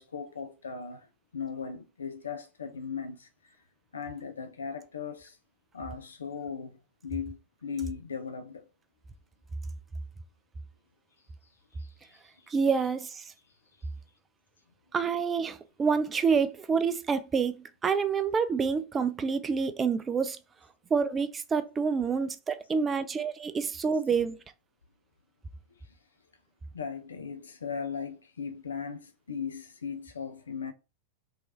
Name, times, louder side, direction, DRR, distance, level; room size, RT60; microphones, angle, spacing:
voice 1, 0.0-3.6 3.9-5.4 5.7-8.7 11.7-12.5 13.8-13.9 25.8-26.0 26.7-30.7, left 6 dB, 70° left, 0.3 m, -38 dB
voice 2, 12.5-13.3 14.9-20.4 20.9-24.4, right 5 dB, 20° right, 0.3 m, -28 dB
2.8 x 2.3 x 2.8 m
figure-of-eight pair, 90°, 0 cm